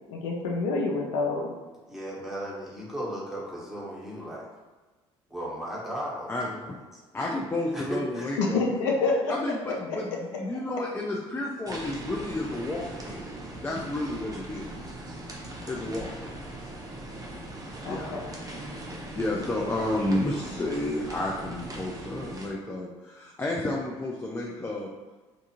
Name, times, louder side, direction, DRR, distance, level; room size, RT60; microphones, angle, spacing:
voice 1, 0.1-1.5 8.4-10.0 17.9-18.2 19.3-19.7, left 3 dB, 75° left, 0 dB, 0.5 m, -28 dB
voice 2, 1.9-4.5 5.3-7.0 7.7-8.2, equal, ahead, -7 dB, 1.1 m, -36 dB
voice 3, 6.3-6.8 7.1-8.7 9.3-14.8 15.7-16.7 17.9-18.2 19.1-24.9, left 1 dB, 15° left, -3 dB, 0.4 m, -31 dB
sound 1, 11.7-22.5, right 1 dB, 25° right, 0.6 m, -40 dB
2.5 x 2.3 x 2.8 m, 1.3 s
hypercardioid pair, 60°, 15 cm